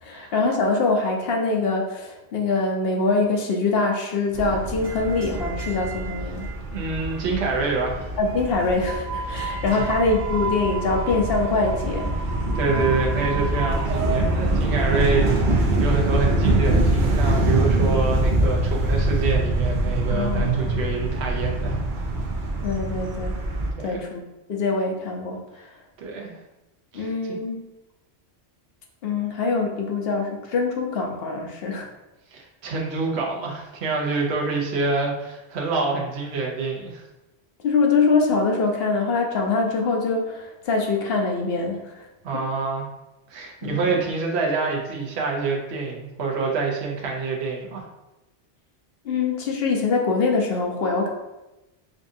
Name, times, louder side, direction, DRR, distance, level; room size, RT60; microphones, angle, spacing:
voice 1, 0.0-6.5 8.2-12.1 20.1-20.8 22.6-23.3 23.8-24.2 24.5-25.4 26.9-27.6 29.0-31.9 37.6-42.1 42.3-42.4 43.6-43.8 49.0-51.1, left 3 dB, 65° left, 1 dB, 0.8 m, -24 dB
sound 1, 4.3-23.7, right 2 dB, 55° right, 0.6 m, -24 dB
voice 2, 6.7-8.1 9.3-9.4 9.7-9.9 12.5-21.8 23.8-24.0 26.0-26.4 26.9-27.4 32.3-37.0 42.2-42.8 43.3-47.9, right 4 dB, 70° right, -1 dB, 1.0 m, -26 dB
5.1 x 2.4 x 2.7 m, 0.99 s
omnidirectional pair, 1.2 m